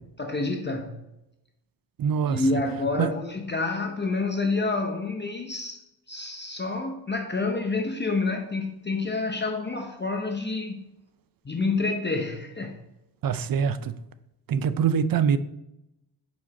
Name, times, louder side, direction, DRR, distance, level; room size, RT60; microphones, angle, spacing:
voice 1, 0.2-1.0 2.3-5.8 6.1-10.8 11.4-12.8, left 3 dB, 25° left, 0.7 m, -28 dB
voice 2, 2.0-2.4 3.0-3.1 13.2-14.0 14.5-15.4, right 7 dB, 50° right, 0.5 m, -24 dB
5.1 x 4.7 x 4.0 m
cardioid pair, 70°, 46 cm